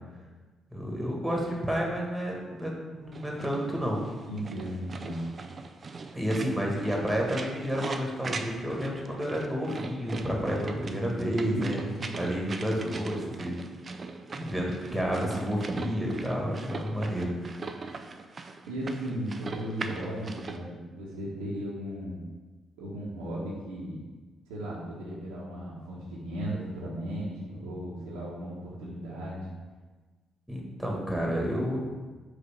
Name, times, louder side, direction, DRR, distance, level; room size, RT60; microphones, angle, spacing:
voice 1, 0.7-4.0 6.1-11.8 12.1-13.6 14.3-17.3 17.5-17.8 30.5-31.8, equal, 10° right, -2 dB, 1.9 m, -30 dB
sound 1, 3.1-20.6, right 4 dB, 40° right, 0.5 m, -40 dB
voice 2, 4.3-5.3 6.3-6.6 11.4-12.2 18.7-22.2 22.8-24.0 24.5-29.5, right 1 dB, 80° right, -6 dB, 1.3 m, -36 dB
5.1 x 3.9 x 5.3 m, 1.3 s
hypercardioid pair, 40°, 0 cm